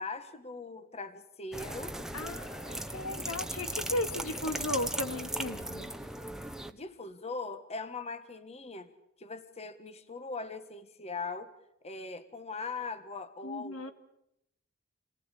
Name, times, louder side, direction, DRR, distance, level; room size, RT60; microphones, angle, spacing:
voice 1, 0.0-2.0 6.7-8.9 9.2-11.5 11.8-13.9, left 4 dB, 30° left, 9 dB, 1.4 m, -40 dB
sound 1, 1.5-6.7, right 1 dB, ahead, 1.0 m, -37 dB
voice 2, 2.1-5.9 13.4-13.9, left 1 dB, 85° left, 7 dB, 2.2 m, -36 dB
28.0 x 19.5 x 8.4 m, 0.81 s
head